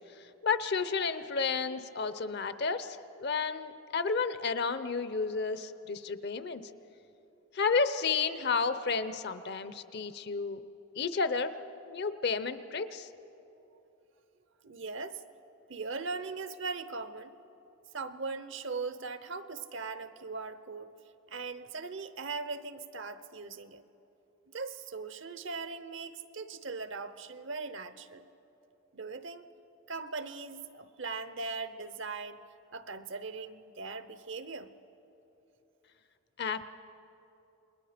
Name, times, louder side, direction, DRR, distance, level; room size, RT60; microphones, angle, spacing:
voice 1, 0.4-6.6 7.5-10.6 10.9-11.5 11.9-13.1 36.4-36.6, left 5 dB, 50° left, 12 dB, 0.7 m, -31 dB
voice 2, 14.6-15.2 15.7-17.3 17.9-20.9 21.3-23.8 24.5-28.2 28.9-29.5 29.9-32.4 32.7-34.7, right 4 dB, 60° right, 12 dB, 0.8 m, -39 dB
29.0 x 21.0 x 5.1 m, 3.0 s
head